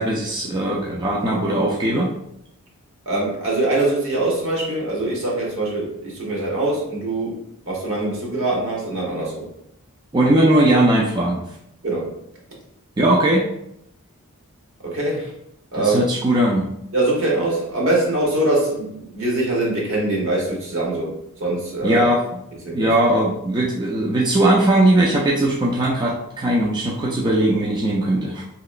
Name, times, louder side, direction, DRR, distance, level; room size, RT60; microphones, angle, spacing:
voice 1, 0.0-2.1 10.1-11.4 13.0-13.4 15.8-16.7 21.8-22.2 22.7-28.4, right 1 dB, 20° right, -3 dB, 0.3 m, -19 dB
voice 2, 3.0-9.5 11.8-12.1 14.8-15.3 15.7-16.0 16.9-22.1 22.6-23.0, right 2 dB, 60° right, -3 dB, 1.1 m, -23 dB
3.0 x 2.9 x 2.4 m, 0.76 s
head